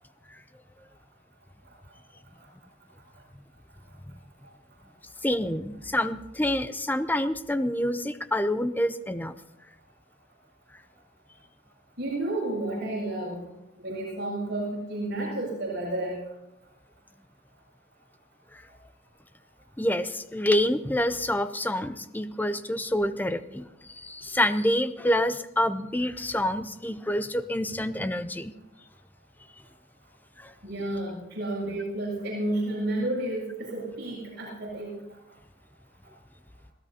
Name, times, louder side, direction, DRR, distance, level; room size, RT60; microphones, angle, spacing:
voice 1, 5.2-9.3 18.5-18.6 19.8-28.5 30.4-30.5, left 1 dB, 10° left, 12 dB, 0.5 m, -27 dB
voice 2, 12.0-13.4 13.8-16.2 30.6-34.9, right 1 dB, 55° right, -4 dB, 7.2 m, -31 dB
27.0 x 16.5 x 2.8 m, 0.93 s
head